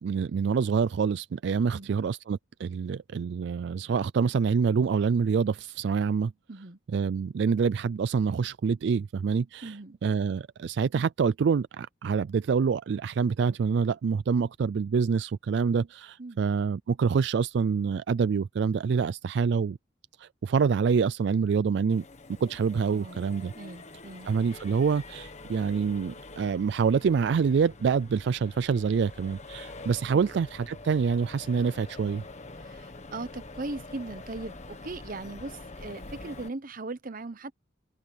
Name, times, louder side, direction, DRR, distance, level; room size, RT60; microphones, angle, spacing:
voice 1, 0.0-6.3 6.9-9.8 10.0-19.8 20.2-22.0 22.4-23.5 24.3-32.2, right 6 dB, 65° right, 0.3 m, -26 dB
voice 2, 6.5-6.8 9.6-10.0 16.2-16.4 22.8-23.2 23.5-24.3 32.6-37.5, right 2 dB, 50° right, 1.0 m, -39 dB
Accelerating revving vroom, 21.9-36.5, left 2 dB, 40° left, 1.4 m, -45 dB
head